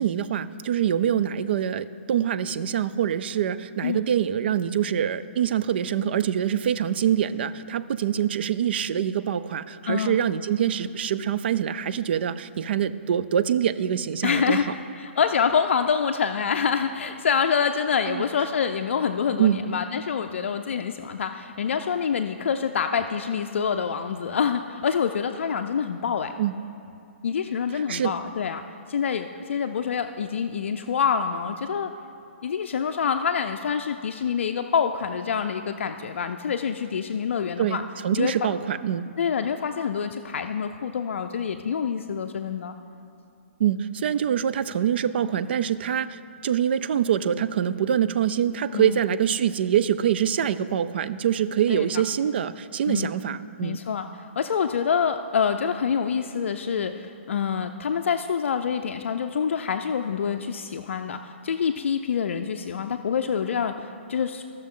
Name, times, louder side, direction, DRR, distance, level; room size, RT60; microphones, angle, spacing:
voice 1, 0.0-14.6 18.1-18.2 19.4-19.6 26.4-26.5 27.9-28.1 37.6-39.1 43.6-53.8, right 9 dB, 55° right, 13 dB, 0.4 m, -25 dB
voice 2, 9.9-10.2 14.2-26.3 27.2-28.6 28.9-31.9 32.4-37.8 38.1-38.3 39.2-42.8 48.7-49.0 51.7-51.9 52.9-53.1 53.6-64.4, left 7 dB, 70° left, 6 dB, 0.4 m, -26 dB
15.5 x 6.3 x 3.7 m, 2.5 s
hypercardioid pair, 155°, 7 cm